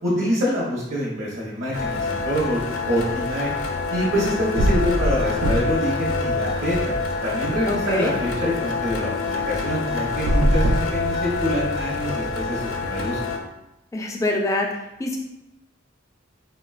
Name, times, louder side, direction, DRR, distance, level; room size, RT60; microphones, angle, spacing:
voice 1, 0.0-3.5 3.9-6.9 7.2-13.2, equal, 60° right, -6 dB, 0.7 m, -26 dB
sound 1, 1.7-13.4, left 4 dB, 85° left, 0.4 m, -27 dB
sound 2, 4.1-4.3 4.6-5.9 6.2-7.3 10.1-11.6, right 1 dB, 85° right, 0.4 m, -23 dB
voice 2, 7.7-8.1 13.9-14.7 15.0-15.2, left 2 dB, 15° left, 0 dB, 0.3 m, -24 dB
3.6 x 2.1 x 2.3 m, 0.89 s
head